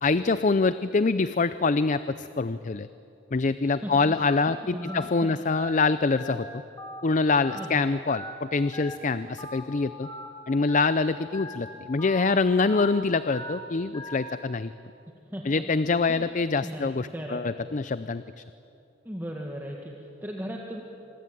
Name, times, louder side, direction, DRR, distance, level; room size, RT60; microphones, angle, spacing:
voice 1, 0.0-2.9 3.3-6.5 7.0-10.1 10.5-14.7 15.4-18.4, left 4 dB, 40° left, 13 dB, 0.5 m, -25 dB
voice 2, 3.6-4.2 4.5-5.4 7.5-8.0 15.3-15.6 16.1-16.3 16.6-17.4 19.0-20.8, equal, 10° right, -1 dB, 1.9 m, -37 dB
Telephone, 4.2-4.4 4.8-5.0 5.5-5.7 6.1-6.4 6.8-7.0 7.4-7.7 8.1-8.3 8.7-9.0 9.4-9.6 10.0-10.3 10.7-10.9 11.3-11.6 12.0-12.2 12.6-12.9 13.3-13.5 13.9-14.2, left 1 dB, 20° left, 5.4 m, -39 dB
26.5 x 21.5 x 9.1 m, 2.7 s
head